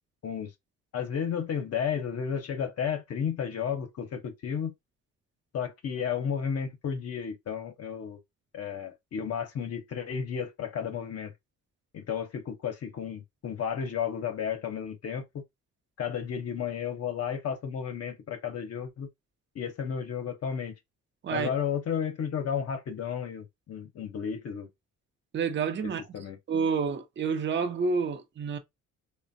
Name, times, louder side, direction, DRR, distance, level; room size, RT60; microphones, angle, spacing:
voice 1, 0.9-4.7 5.5-8.2 8.5-11.3 11.9-15.2 16.0-19.1 19.5-20.7 21.3-24.7 26.1-26.4, left 7 dB, 55° left, 0.7 m, -33 dB
voice 2, 25.3-26.0 26.5-28.6, right 5 dB, 40° right, 0.6 m, -29 dB
3.2 x 2.1 x 2.5 m
cardioid pair, 90°, 30 cm